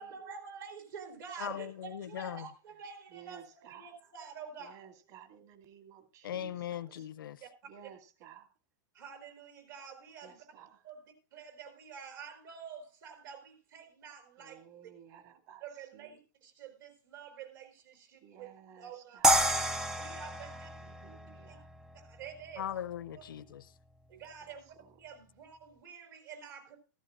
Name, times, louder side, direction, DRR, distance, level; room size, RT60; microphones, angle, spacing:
voice 1, 0.0-4.8 7.4-7.5 8.9-10.5 10.8-14.9 15.6-18.5 18.8-19.2 19.9-20.7 21.5-21.6 21.9-22.6 23.1-23.2 24.1-24.7 25.0-26.8, right 6 dB, 75° right, 4.1 m, -48 dB
voice 2, 1.4-2.4 6.2-7.4 22.6-23.7, left 10 dB, 85° left, 0.6 m, -39 dB
voice 3, 3.1-3.9 4.6-7.1 7.7-8.5 10.2-10.8 14.4-15.6 15.9-16.2 18.2-19.4 20.5-21.7 24.4-24.9, right 9 dB, 55° right, 2.6 m, -55 dB
sound 1, 19.2-22.3, right 1 dB, 5° right, 0.5 m, -30 dB
14.5 x 13.5 x 2.6 m
hypercardioid pair, 125°, 11 cm